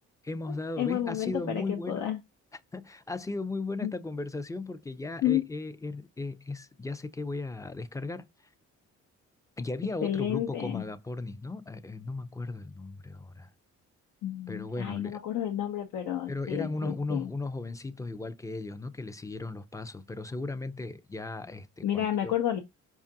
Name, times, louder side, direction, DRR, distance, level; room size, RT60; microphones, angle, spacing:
voice 1, 0.2-2.1 2.7-8.3 9.6-13.5 14.5-15.2 16.3-22.3, left 3 dB, 10° left, 0.4 m, -36 dB
voice 2, 0.8-2.2 3.8-3.9 5.2-5.5 10.0-10.8 14.2-17.3 21.8-22.6, left 11 dB, 80° left, 0.8 m, -30 dB
5.0 x 2.4 x 2.7 m
cardioid pair, 90°, 30 cm